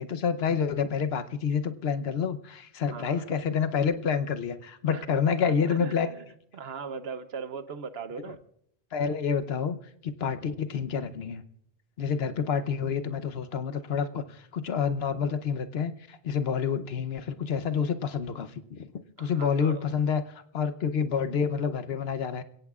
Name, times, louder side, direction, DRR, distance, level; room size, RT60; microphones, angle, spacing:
voice 1, 0.0-6.1 8.9-9.8 10.0-11.4 12.0-18.9 19.2-22.4, left 6 dB, 75° left, 10 dB, 1.1 m, -28 dB
voice 2, 2.9-3.3 4.9-5.0 5.4-6.3 6.5-8.4 19.2-19.9, right 5 dB, 80° right, 11 dB, 1.1 m, -39 dB
28.0 x 16.5 x 2.4 m, 0.70 s
omnidirectional pair, 1.0 m